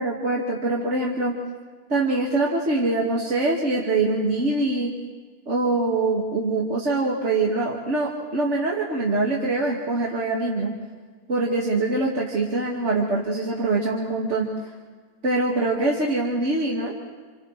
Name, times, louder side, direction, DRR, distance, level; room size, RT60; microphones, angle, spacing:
voice 1, 0.0-1.3 1.9-4.9 5.5-10.7 11.3-14.5 15.2-16.9, right 2 dB, 50° right, -4 dB, 2.3 m, -24 dB
29.5 x 28.5 x 3.3 m, 1.5 s
omnidirectional pair, 1.6 m